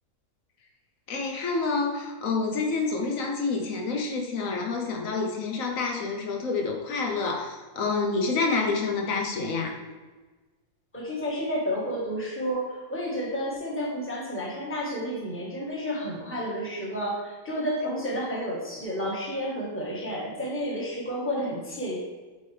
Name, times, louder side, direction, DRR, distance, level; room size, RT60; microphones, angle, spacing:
voice 1, 1.1-9.8, left 4 dB, 70° left, 2 dB, 1.3 m, -28 dB
voice 2, 10.9-22.0, equal, 10° left, -5 dB, 1.3 m, -31 dB
8.2 x 3.7 x 3.3 m, 1.3 s
omnidirectional pair, 1.5 m